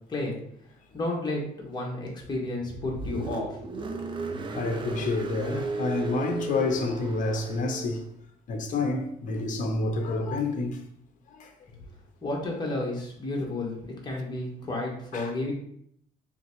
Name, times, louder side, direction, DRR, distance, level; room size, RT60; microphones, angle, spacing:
voice 1, 0.9-3.6 12.2-15.5, left 2 dB, 25° left, 1.3 m, -32 dB
Car, 2.6-8.0, right 3 dB, 30° right, 0.6 m, -35 dB
voice 2, 4.5-8.1 8.5-10.9 11.3-11.6 15.1-15.3, left 3 dB, 50° left, 0.8 m, -29 dB
3.8 x 3.3 x 3.1 m
cardioid pair, 110°, 17 cm